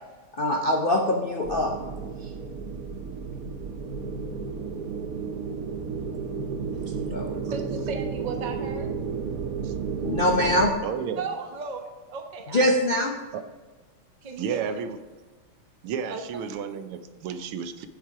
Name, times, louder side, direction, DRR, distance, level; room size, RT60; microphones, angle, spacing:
voice 1, 0.4-1.7 2.2-2.3 7.1-7.3 10.0-10.7 12.5-13.1, left 1 dB, 60° left, 1 dB, 0.5 m, -23 dB
sound 1, 1.4-10.7, right 5 dB, 65° right, 0.9 m, -32 dB
voice 2, 6.7-8.9 11.2-12.7 12.9-13.0 14.2-14.8 16.0-16.2, right 4 dB, 45° right, 4 dB, 0.6 m, -37 dB
voice 3, 10.8-11.3 13.3-13.4 14.4-15.0 15.8-17.9, right 7 dB, 85° right, 9 dB, 1.6 m, -32 dB
8.1 x 7.2 x 4.7 m, 1.3 s
omnidirectional pair, 2.3 m